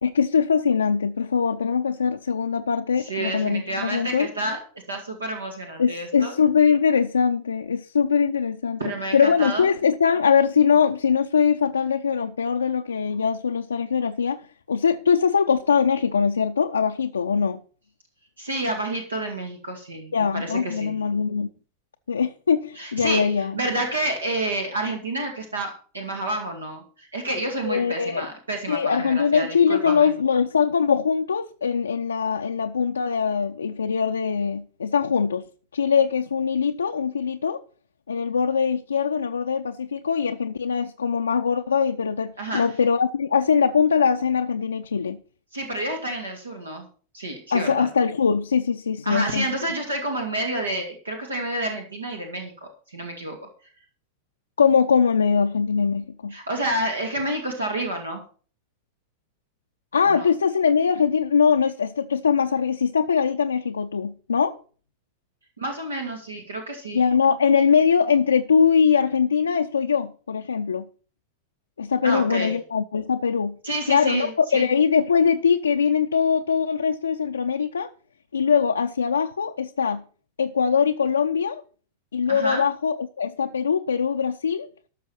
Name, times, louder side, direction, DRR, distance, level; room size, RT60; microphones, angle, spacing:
voice 1, 0.0-4.3 5.8-14.4 14.7-17.6 20.1-21.5 22.1-23.5 27.7-28.3 28.7-35.4 35.7-37.6 38.1-45.2 47.5-49.5 54.6-56.3 59.9-64.6 66.9-70.9 71.8-73.6 73.9-77.9 78.3-80.0 80.4-81.6 82.1-84.7, left 6 dB, 70° left, 0.5 m, -22 dB
voice 2, 3.0-4.6 4.9-6.3 8.8-9.7 18.4-20.9 22.8-30.1 42.4-42.6 45.5-46.9 47.1-47.9 49.1-53.4 56.3-58.2 60.0-60.3 65.6-67.0 72.0-72.5 73.6-74.7 82.3-82.6, right 1 dB, 75° right, 2.1 m, -29 dB
13.0 x 6.3 x 6.0 m
figure-of-eight pair, 90°, 0 cm